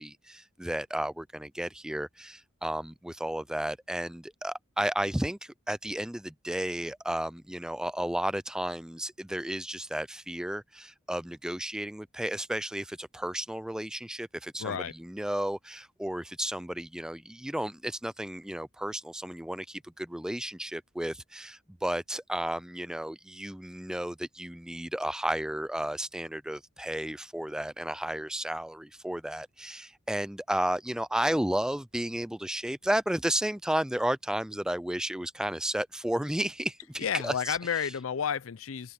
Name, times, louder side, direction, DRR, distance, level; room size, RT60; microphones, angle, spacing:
voice 1, 0.0-37.8, right 1 dB, 5° right, 0.3 m, -33 dB
voice 2, 14.6-14.9 37.0-38.9, left 7 dB, 90° left, 0.5 m, -31 dB
open air
head